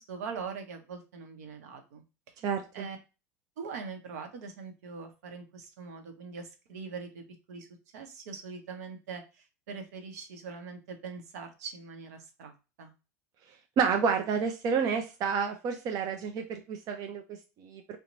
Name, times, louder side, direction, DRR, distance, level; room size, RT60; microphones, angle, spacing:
voice 1, 0.0-2.0 2.7-3.0 3.6-7.7 7.9-12.9, right 5 dB, 70° right, 5 dB, 0.9 m, -42 dB
voice 2, 2.4-2.9 13.5-18.0, right 6 dB, 45° right, 4 dB, 0.6 m, -30 dB
2.9 x 2.2 x 3.9 m, 0.29 s
hypercardioid pair, 80°, 9 cm